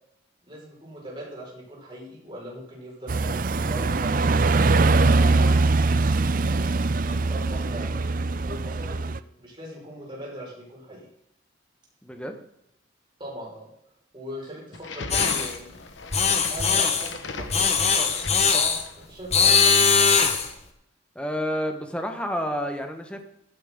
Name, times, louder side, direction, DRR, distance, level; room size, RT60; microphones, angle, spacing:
voice 1, 0.5-4.2 5.0-5.6 6.4-7.9 8.4-11.1 13.2-13.7 14.1-15.8 16.5-20.1, right 1 dB, 25° right, -4 dB, 5.4 m, -40 dB
sound 1, 3.1-9.2, right 3 dB, 45° right, 0.5 m, -22 dB
voice 2, 12.0-12.4 21.1-23.2, equal, 5° left, 5 dB, 1.4 m, -29 dB
sound 2, 14.7-19.1, left 3 dB, 75° left, 1.3 m, -38 dB
sound 3, 15.1-15.5 16.1-17.1 17.5-18.8 19.3-20.5, left 5 dB, 35° left, 1.2 m, -20 dB
16.0 x 9.4 x 3.9 m, 0.78 s
head